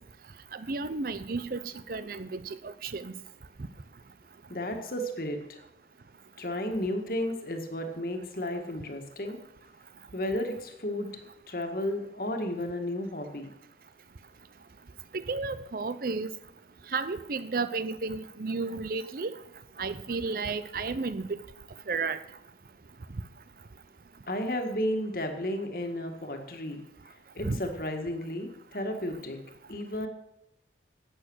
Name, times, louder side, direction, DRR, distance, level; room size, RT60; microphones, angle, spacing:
voice 1, 0.5-1.6 1.9-3.1 15.1-16.3 16.9-19.4 19.8-21.3 21.9-22.2 27.4-27.6, right 4 dB, 50° right, 14 dB, 0.6 m, -32 dB
voice 2, 4.5-5.6 6.4-9.4 10.1-13.5 24.3-26.8 27.1-29.4 29.7-30.1, left 1 dB, 55° left, 5 dB, 1.7 m, -33 dB
11.5 x 8.7 x 6.3 m, 0.86 s
head